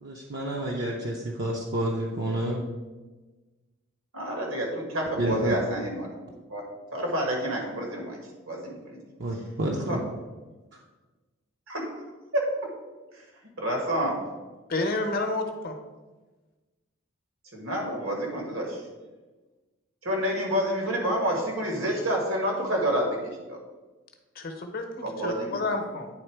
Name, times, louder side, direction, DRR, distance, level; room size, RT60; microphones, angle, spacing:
voice 1, 0.0-2.6 5.2-5.6 9.2-10.0, right 1 dB, 55° right, -1 dB, 0.6 m, -29 dB
voice 2, 4.1-6.1 6.5-6.6 6.9-8.2 8.5-9.0 9.9-10.0 11.7-11.9 12.3-12.4 13.6-14.2 17.5-18.8 20.0-23.1 23.5-23.6 25.0-25.7, equal, 80° right, 0 dB, 1.7 m, -28 dB
voice 3, 14.7-15.7 24.4-26.1, left 2 dB, 45° left, 5 dB, 0.8 m, -30 dB
8.9 x 3.6 x 4.7 m, 1.2 s
head